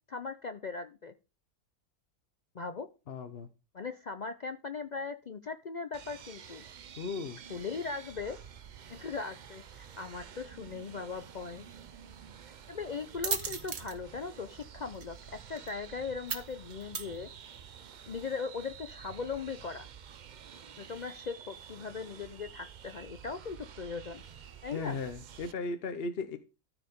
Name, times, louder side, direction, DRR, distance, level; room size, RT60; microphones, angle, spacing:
voice 1, 0.1-1.1 2.5-2.9 3.7-6.6 7.5-8.4 8.9-11.6 12.7-15.2 15.5-17.3 18.1-19.9 20.8-24.2 24.6-25.0, left 4 dB, 75° left, 9 dB, 0.4 m, -39 dB
voice 2, 3.1-3.5 7.0-7.4 24.7-26.4, left 4 dB, 50° left, 10 dB, 0.9 m, -36 dB
sound 1, 5.9-25.5, right 8 dB, 90° right, 0.4 m, -50 dB
sound 2, 10.9-17.8, right 6 dB, 60° right, 1.4 m, -41 dB
13.5 x 4.9 x 5.2 m, 0.32 s
omnidirectional pair, 1.6 m